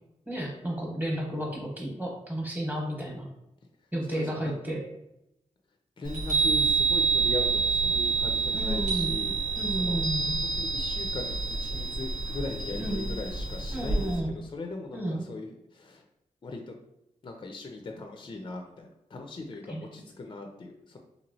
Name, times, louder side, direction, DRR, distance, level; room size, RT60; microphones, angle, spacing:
voice 1, 0.3-3.3 3.9-4.8 7.8-8.0 8.5-9.1 9.6-10.4 12.8-13.1 13.7-14.4 14.9-15.2 19.7-19.9, right 1 dB, 15° right, -1 dB, 0.9 m, -32 dB
voice 2, 4.1-4.6 6.0-9.3 9.8-10.0 10.4-15.5 15.7-16.0 16.4-16.7 17.2-21.0, left 2 dB, 35° left, 3 dB, 0.4 m, -39 dB
Chime, 6.1-14.2, right 4 dB, 80° right, 1.1 m, -28 dB
2.9 x 2.7 x 2.7 m, 0.85 s
cardioid pair, 70°, 13 cm